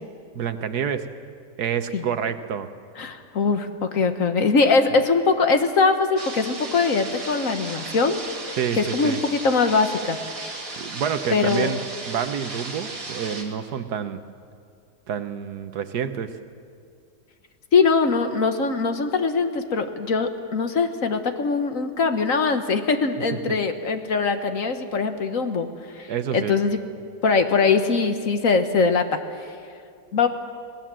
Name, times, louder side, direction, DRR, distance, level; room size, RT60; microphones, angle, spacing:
voice 1, 0.3-1.1 1.6-2.7 8.6-9.2 10.8-11.8 12.1-14.2 15.1-16.3 23.5-23.6 26.1-26.5, right 8 dB, 70° right, 10 dB, 1.5 m, -28 dB
voice 2, 3.0-10.2 10.5-10.6 11.3-11.8 17.7-25.7 26.0-26.8 27.2-29.2 30.1-30.3, left 4 dB, 55° left, 7 dB, 1.5 m, -22 dB
sound 1, 6.2-13.4, right 3 dB, 55° right, 2.9 m, -35 dB
25.5 x 18.0 x 7.6 m, 2.3 s
omnidirectional pair, 1.8 m